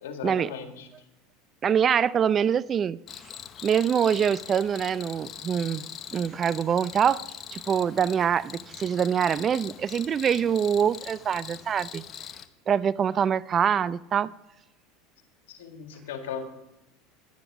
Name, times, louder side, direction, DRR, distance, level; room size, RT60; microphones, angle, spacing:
voice 1, 0.0-0.9 15.5-16.4, left 7 dB, 90° left, 5 dB, 1.9 m, -37 dB
voice 2, 1.6-3.0 3.6-5.8 6.1-7.2 7.5-12.0 12.7-14.3, right 8 dB, 30° right, 18 dB, 0.4 m, -24 dB
Cricket, 3.1-12.5, left 8 dB, 35° left, 0.8 m, -42 dB
11.5 x 9.9 x 4.8 m, 0.90 s
supercardioid pair, 115°, 0 cm